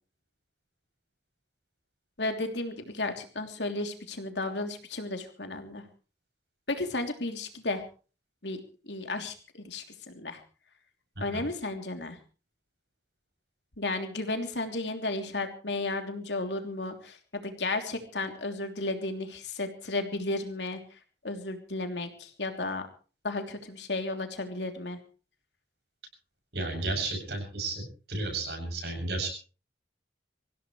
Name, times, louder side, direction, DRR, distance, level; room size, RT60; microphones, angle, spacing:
voice 1, 2.2-5.8 6.7-7.8 8.4-10.4 11.2-12.2 13.8-20.8 21.2-22.9 23.2-25.0, left 2 dB, 85° left, 5 dB, 3.1 m, -33 dB
voice 2, 26.5-29.3, right 2 dB, 70° right, 3 dB, 7.6 m, -33 dB
24.5 x 16.5 x 3.2 m, 0.37 s
head